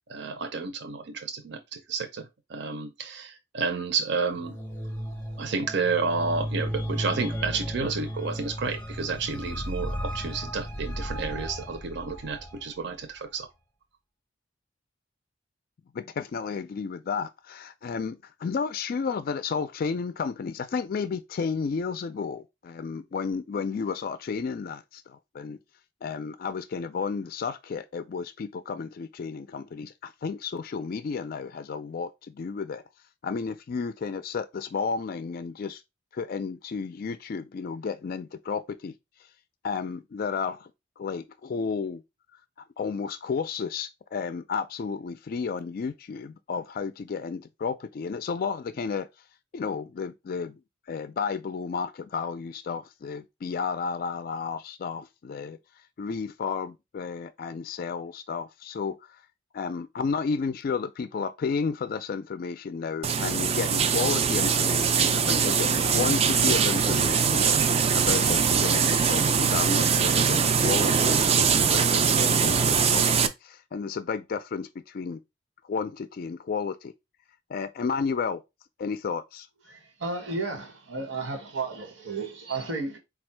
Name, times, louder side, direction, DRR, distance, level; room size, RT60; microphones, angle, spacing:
voice 1, 0.1-4.6 5.4-13.5, right 4 dB, 65° right, 0.7 m, -31 dB
sound 1, 4.3-12.6, equal, 10° left, 0.7 m, -34 dB
voice 2, 15.9-25.6 26.0-32.8 33.2-35.8 36.1-38.9 39.6-40.7 41.0-42.0 42.8-49.1 49.5-50.6 50.9-55.6 56.0-59.0 59.5-67.6 67.9-75.2 75.7-76.9 77.5-78.4 78.8-79.5, left 5 dB, 50° left, 0.3 m, -32 dB
sound 2, 63.0-73.3, right 6 dB, 35° right, 0.4 m, -22 dB
voice 3, 79.7-83.0, right 3 dB, 90° right, 1.4 m, -33 dB
4.3 x 2.4 x 4.4 m
head